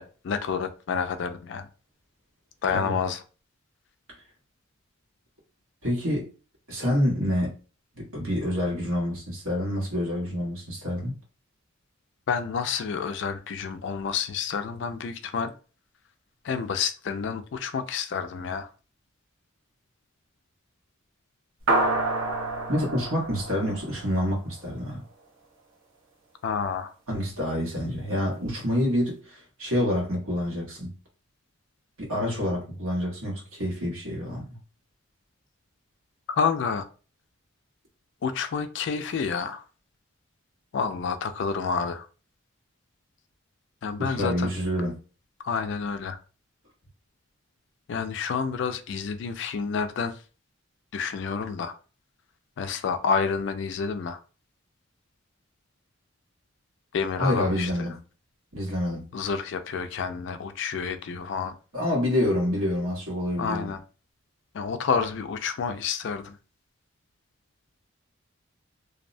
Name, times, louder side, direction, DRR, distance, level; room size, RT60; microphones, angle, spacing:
voice 1, 0.0-1.7 2.6-3.2 12.3-15.5 16.4-18.7 26.4-26.9 36.3-36.9 38.2-39.6 40.7-42.1 43.8-44.5 45.4-46.2 47.9-50.2 50.9-51.8 52.6-54.2 56.9-57.9 59.1-61.5 63.4-63.8 64.5-66.4, left 6 dB, 55° left, 0.3 m, -29 dB
voice 2, 5.8-6.3 6.7-7.5 7.9-11.1 22.7-25.0 27.1-30.9 32.0-34.6 44.0-45.0 57.2-58.0 58.5-59.1 61.7-63.8, left 1 dB, 90° right, 1.3 m, -27 dB
sound 1, 21.7-24.4, right 2 dB, 70° right, 0.7 m, -27 dB
2.6 x 2.1 x 2.5 m
head